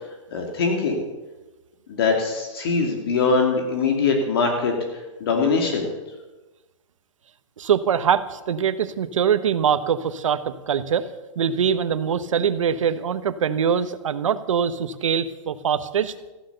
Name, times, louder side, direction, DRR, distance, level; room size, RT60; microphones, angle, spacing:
voice 1, 0.3-1.0 1.9-4.7 5.2-5.9, left 4 dB, 45° left, 2 dB, 2.6 m, -22 dB
voice 2, 7.6-11.1 11.4-16.1, right 7 dB, 75° right, 12 dB, 1.2 m, -23 dB
15.0 x 12.0 x 6.8 m, 1.1 s
hypercardioid pair, 175°, 17 cm